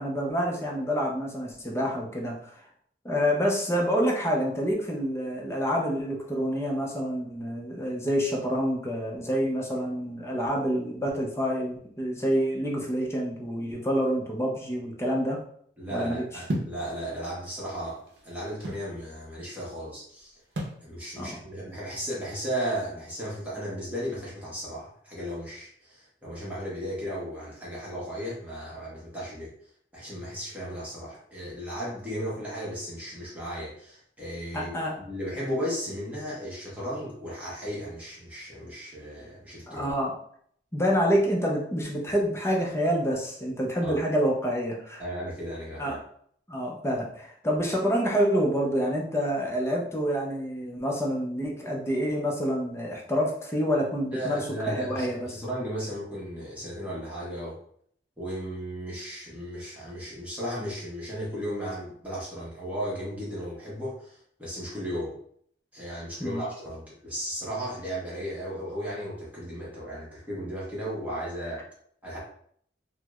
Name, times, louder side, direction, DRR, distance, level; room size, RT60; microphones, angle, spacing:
voice 1, 0.0-2.7 3.0-15.4 15.9-16.2 21.2-21.4 34.5-35.0 39.7-40.1 40.7-45.0 45.8-46.0 46.5-55.4 66.2-66.4, equal, 15° left, -1 dB, 0.5 m, -27 dB
voice 2, 15.8-20.3 20.8-29.5 29.9-39.9 43.8-44.0 45.0-46.0 54.1-57.6 58.2-65.1 65.7-71.6 72.0-72.2, equal, 10° right, -7 dB, 0.9 m, -35 dB
sound 1, 16.5-16.8 17.7-18.9 20.6-20.8, right 1 dB, 65° right, 0.7 m, -32 dB
4.5 x 2.0 x 2.3 m, 0.63 s
head